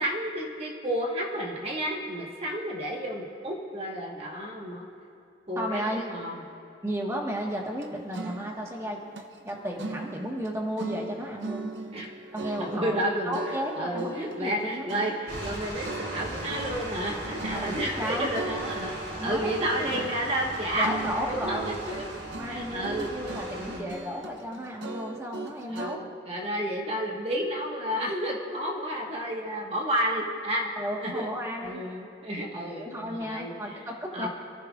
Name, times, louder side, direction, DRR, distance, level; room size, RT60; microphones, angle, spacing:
voice 1, 0.0-4.8 5.5-6.4 11.9-12.1 12.6-13.4 13.8-18.9 19.2-21.0 21.3-22.1 22.4-23.1 23.6-23.9 25.7-30.7 31.0-31.3 31.6-33.8 34.1-34.3, equal, 30° right, -1 dB, 1.4 m, -31 dB
voice 2, 5.6-6.0 6.8-9.0 9.4-11.7 12.3-13.0 13.2-14.9 17.5-18.3 19.1-19.5 19.8-20.0 20.8-21.7 22.4-26.0 30.8-31.8 32.5-34.3, equal, 15° right, -1 dB, 1.4 m, -33 dB
sound 1, 7.6-10.5 10.8-13.1 13.3-26.0, right 3 dB, 85° right, 0.8 m, -40 dB
sound 2, 15.3-23.8, right 1 dB, 65° right, 3.5 m, -38 dB
26.5 x 14.5 x 2.4 m, 2.7 s
head